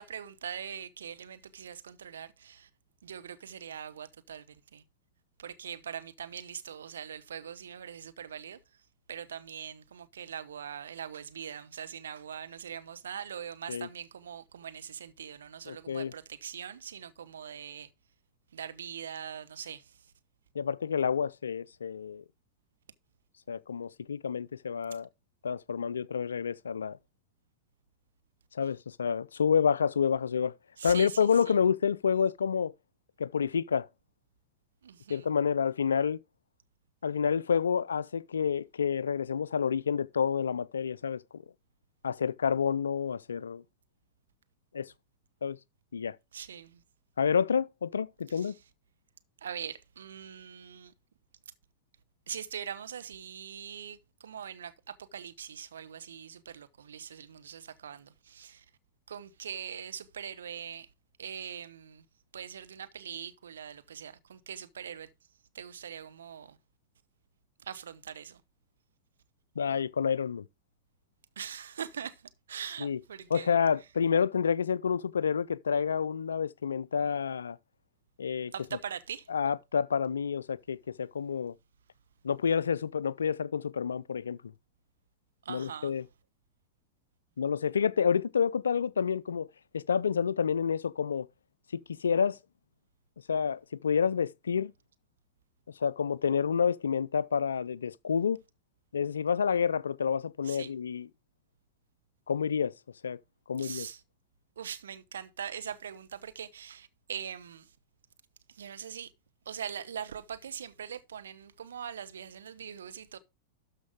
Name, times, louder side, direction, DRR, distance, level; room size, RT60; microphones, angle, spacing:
voice 1, 0.0-2.7 3.0-4.4 4.7-4.8 5.4-8.6 9.1-17.9 18.5-19.8 30.8-31.1 34.8-35.2 46.3-46.8 49.4-50.9 52.3-54.0 54.2-58.6 59.1-60.9 61.2-62.0 62.3-65.1 65.5-66.6 67.7-68.4 71.4-72.1 72.5-73.5 78.5-79.2 85.4-85.9 100.5-100.7 103.6-104.0 104.6-107.6 108.6-109.1 109.5-113.2, right 8 dB, 70° right, 1.0 m, -42 dB
voice 2, 15.7-16.1 20.5-22.2 23.5-25.1 25.4-27.0 28.5-30.5 30.8-32.7 33.2-33.9 35.1-36.2 37.0-41.4 42.0-43.6 44.7-44.9 45.4-45.6 45.9-46.2 47.2-48.5 69.6-70.5 72.8-73.0 73.3-77.6 78.2-78.5 79.3-81.5 82.2-84.4 85.5-86.1 87.4-89.5 89.7-91.3 91.7-92.4 93.3-94.7 95.8-98.4 98.9-101.1 102.3-102.7 103.0-103.2 103.5-103.9, left 6 dB, 75° left, 0.4 m, -29 dB
12.5 x 5.3 x 3.5 m
figure-of-eight pair, 95°, 0 cm